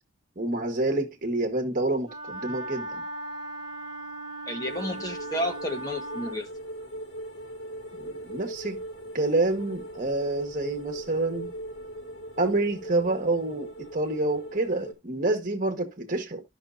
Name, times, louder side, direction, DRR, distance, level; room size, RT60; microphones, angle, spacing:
voice 1, 0.4-3.0 8.0-8.8 9.1-11.5 12.4-16.4, right 2 dB, 45° right, 1.4 m, -28 dB
Wind instrument woodwind instrument, 2.0-6.4, right 1 dB, 20° right, 0.8 m, -38 dB
voice 2, 4.5-6.5, equal, 20° left, 1.1 m, -31 dB
sound 1, 4.7-14.9, right 1 dB, 65° left, 2.2 m, -40 dB
13.0 x 6.0 x 2.6 m
head